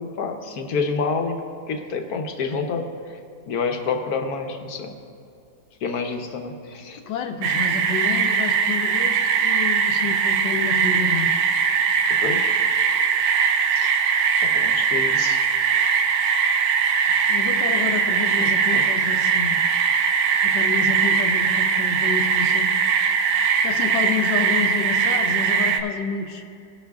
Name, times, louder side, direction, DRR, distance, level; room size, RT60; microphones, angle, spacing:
voice 1, 0.0-1.4 1.7-2.9 3.5-4.9 5.8-7.0 12.1-12.5 13.7-13.9 14.4-15.4 18.4-19.2 20.3-20.4, left 4 dB, 60° left, 5 dB, 1.2 m, -28 dB
voice 2, 7.1-11.4 17.3-19.6 20.4-22.8 23.6-26.4, left 5 dB, 80° left, 5 dB, 1.4 m, -29 dB
sound 1, 7.4-25.8, right 6 dB, 90° right, 1.4 m, -21 dB
17.0 x 6.0 x 3.5 m, 2.5 s
omnidirectional pair, 2.0 m